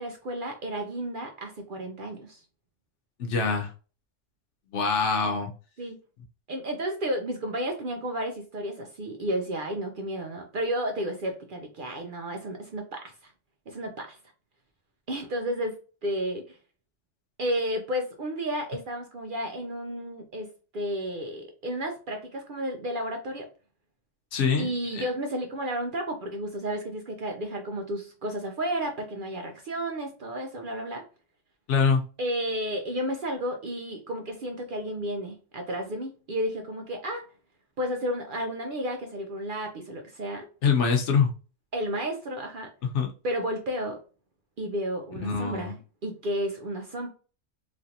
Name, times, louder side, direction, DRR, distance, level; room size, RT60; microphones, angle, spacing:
voice 1, 0.0-2.4 5.8-6.0 6.5-13.3 13.7-14.2 15.1-15.8 16.0-16.6 17.4-20.5 20.7-23.5 24.6-31.0 32.2-37.2 37.8-40.5 41.7-42.7 43.2-44.0 44.6-47.1, equal, 60° right, 3 dB, 0.6 m, -32 dB
voice 2, 3.2-3.7 4.7-5.5 24.3-25.0 31.7-32.0 40.6-41.3 42.9-43.1 45.2-45.7, left 5 dB, 70° left, 4 dB, 1.0 m, -24 dB
3.1 x 2.5 x 2.7 m, 0.36 s
omnidirectional pair, 1.3 m